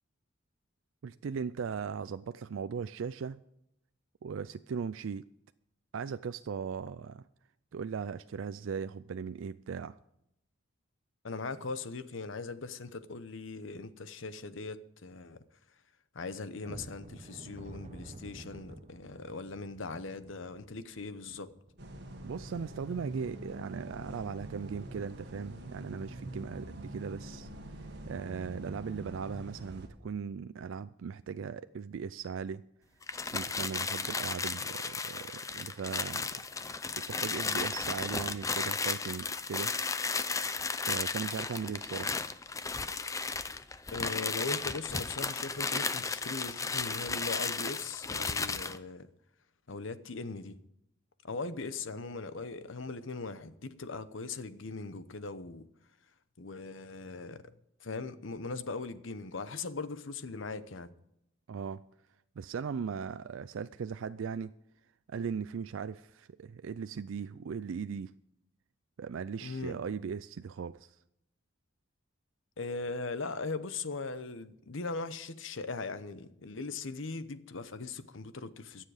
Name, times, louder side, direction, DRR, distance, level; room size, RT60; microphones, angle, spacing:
voice 1, 1.0-3.4 4.2-5.2 5.9-7.2 7.7-10.0 22.2-27.5 27.8-32.7 33.3-36.3 37.0-39.7 40.8-42.4 61.5-61.9 62.4-64.5 65.1-68.2 69.0-71.0, right 6 dB, 80° right, 0.4 m, -38 dB
voice 2, 11.2-15.4 16.1-21.5 43.9-49.1 49.7-50.6 51.2-55.7 56.4-57.4 57.8-60.9 69.4-69.7 72.6-78.8, left 3 dB, 75° left, 0.9 m, -40 dB
sound 1, 16.6-23.4 23.7-23.9 24.3-24.5 24.9-25.1, right 1 dB, 35° right, 0.9 m, -52 dB
sound 2, 21.8-29.9, right 1 dB, 60° right, 2.0 m, -45 dB
sound 3, 33.0-48.8, left 4 dB, 15° left, 0.5 m, -34 dB
22.5 x 7.5 x 4.9 m
head